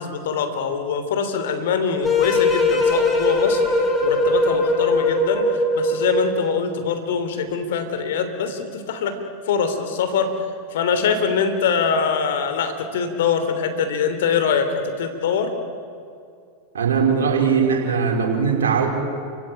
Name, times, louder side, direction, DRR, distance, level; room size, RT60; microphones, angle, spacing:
voice 1, 0.0-3.6 4.0-9.1 9.5-10.3 10.7-15.5, left 6 dB, 70° left, 8 dB, 3.4 m, -23 dB
sound 1, 2.0-6.4, left 2 dB, 20° left, 5.3 m, -20 dB
voice 2, 16.7-18.9, right 6 dB, 80° right, 0 dB, 4.8 m, -20 dB
29.5 x 16.5 x 9.1 m, 2.4 s
hypercardioid pair, 95°, 0 cm